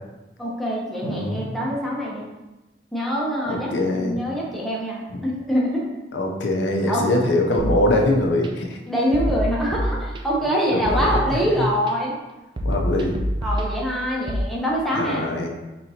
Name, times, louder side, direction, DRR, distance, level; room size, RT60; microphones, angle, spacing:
voice 1, 0.4-2.3 2.9-5.9 6.9-7.1 8.9-12.1 13.4-15.3, equal, ahead, -5 dB, 0.8 m, -24 dB
voice 2, 1.0-1.5 3.5-4.2 5.1-5.2 6.1-8.8 10.7-11.2 12.6-13.2 15.0-15.5, left 1 dB, 85° left, 1 dB, 0.7 m, -23 dB
sound 1, 7.6-8.5 9.1-10.5 10.8-11.9 12.6-14.4, equal, 25° right, 0.4 m, -27 dB
4.3 x 3.8 x 2.8 m, 1.1 s
head